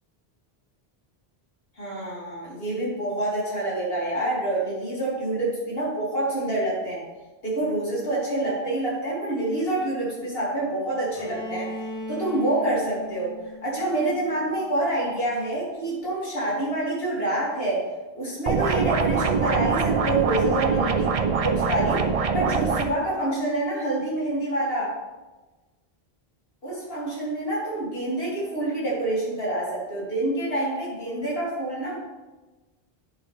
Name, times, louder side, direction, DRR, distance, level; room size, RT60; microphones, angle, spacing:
voice 1, 1.8-7.0 7.4-11.7 12.1-13.3 13.6-17.8 18.1-21.1 21.4-22.0 22.3-24.9 26.6-32.0, right 1 dB, 70° left, -6 dB, 2.8 m, -27 dB
Bowed string instrument, 11.1-15.0, equal, 50° left, 2.4 m, -38 dB
sound 1, 18.5-22.8, right 5 dB, 45° right, 0.5 m, -23 dB
9.3 x 5.8 x 3.3 m, 1.2 s
omnidirectional pair, 1.0 m